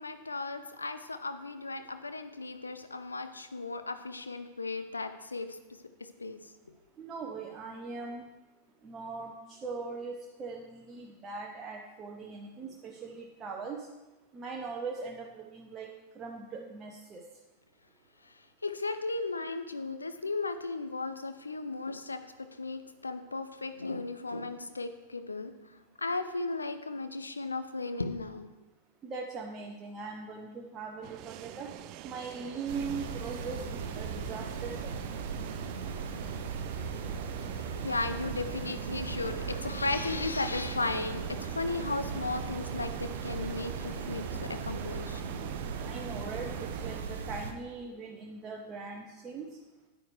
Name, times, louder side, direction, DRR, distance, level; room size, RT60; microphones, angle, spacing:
voice 1, 0.0-5.6 6.2-6.4 18.6-25.5 26.0-28.5 37.5-45.2, left 3 dB, 80° left, 9 dB, 0.6 m, -35 dB
voice 2, 7.0-8.3 8.8-13.9 14.3-15.9 16.1-17.2 29.0-31.7 32.0-35.0 45.8-49.5, right 4 dB, 25° right, 0 dB, 0.9 m, -40 dB
sound 1, 31.0-47.0, right 13 dB, 40° right, 0.3 m, -45 dB
sound 2, 32.7-47.5, right 5 dB, 60° right, 0.8 m, -38 dB
9.4 x 9.0 x 3.2 m, 1.1 s
figure-of-eight pair, 90°, 0 cm